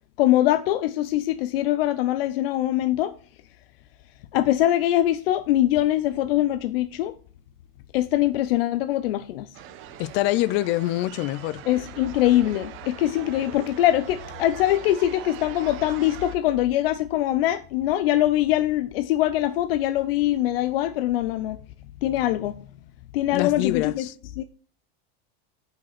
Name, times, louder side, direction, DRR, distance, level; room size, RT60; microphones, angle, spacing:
voice 1, 0.2-3.1 4.3-7.1 7.9-9.5 11.6-21.6 22.0-22.6 23.1-24.1 24.4-24.5, left 13 dB, 75° left, 0.8 m, -23 dB
sound 1, 9.5-16.4, right 11 dB, 45° right, 1.0 m, -42 dB
voice 2, 10.0-11.6 23.3-24.1, left 16 dB, 40° left, 0.4 m, -25 dB
7.5 x 6.2 x 5.9 m
supercardioid pair, 135°, 29 cm